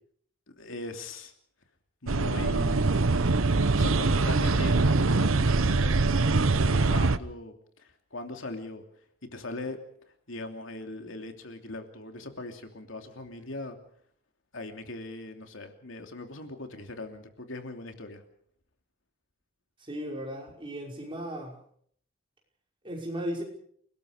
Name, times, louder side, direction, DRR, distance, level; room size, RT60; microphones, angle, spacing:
voice 1, 0.5-1.3 2.0-2.9 3.7-6.4 6.6-8.8 9.3-9.8 10.3-13.8 14.5-18.2, left 2 dB, 70° left, 5 dB, 2.9 m, -40 dB
sound 1, 2.1-7.2, right 3 dB, 85° right, 0.9 m, -23 dB
voice 2, 19.9-21.6 22.8-23.4, equal, 25° right, 0 dB, 5.7 m, -35 dB
29.5 x 19.5 x 5.1 m, 0.63 s
head